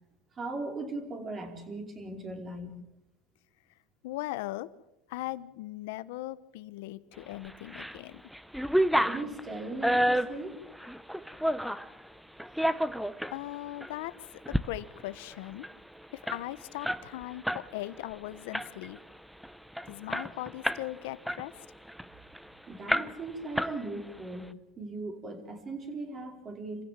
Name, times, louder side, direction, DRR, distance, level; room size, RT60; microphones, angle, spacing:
voice 1, 0.3-2.8 9.0-10.6 22.7-26.8, right 2 dB, 30° right, 4 dB, 4.5 m, -38 dB
voice 2, 4.0-4.7 5.1-8.2 13.3-15.7 16.1-19.0 19.9-21.6, left 17 dB, 85° left, 15 dB, 1.0 m, -39 dB
sound 1, 7.4-8.0 8.3-11.9 12.4-13.4 13.8-13.9 14.3-14.7 15.0-15.1 15.3-17.7 18.0-18.2 18.5-19.0 19.4-19.5 19.8-20.9 21.3-22.4 22.9-23.3 23.6-24.2, equal, ahead, 0.8 m, -29 dB
27.0 x 16.0 x 7.5 m, 0.89 s
supercardioid pair, 125°, 0 cm